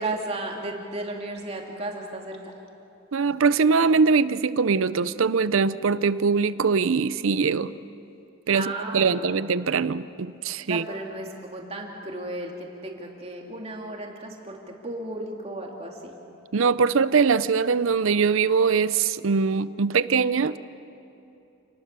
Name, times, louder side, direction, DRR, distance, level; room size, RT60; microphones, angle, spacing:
voice 1, 0.0-2.5 8.5-9.2 10.7-16.2, right 2 dB, 30° right, 0 dB, 2.8 m, -34 dB
voice 2, 3.1-7.7 8.5-10.8 16.5-20.6, right 5 dB, 70° right, 16 dB, 0.6 m, -22 dB
28.5 x 19.5 x 6.8 m, 2.8 s
head